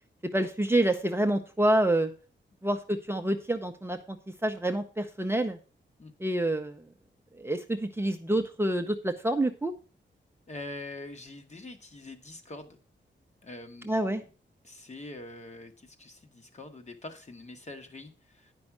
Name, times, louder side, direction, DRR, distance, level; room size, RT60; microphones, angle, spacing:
voice 1, 0.3-2.1 2.6-4.2 4.4-5.6 6.2-6.8 7.3-9.7 13.8-14.2, right 1 dB, 10° right, 5 dB, 0.6 m, -27 dB
voice 2, 10.5-12.8 13.4-14.2 14.6-18.5, left 2 dB, 35° left, 6 dB, 1.3 m, -44 dB
9.9 x 5.4 x 5.9 m, 0.36 s
wide cardioid pair, 150°, 20 cm